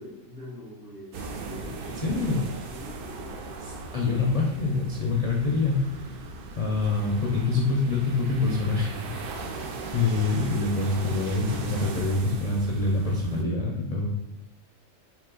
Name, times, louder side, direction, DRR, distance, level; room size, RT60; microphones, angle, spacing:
voice 1, 0.0-2.0 2.7-3.4, left 1 dB, 45° right, -6 dB, 1.6 m, -43 dB
sound 1, 1.1-13.4, right 3 dB, 65° right, 0.6 m, -38 dB
voice 2, 2.0-2.4 3.9-5.9 6.6-9.2 9.9-14.1, left 3 dB, 50° left, -3 dB, 0.4 m, -25 dB
4.0 x 2.9 x 3.7 m, 0.97 s
omnidirectional pair, 1.4 m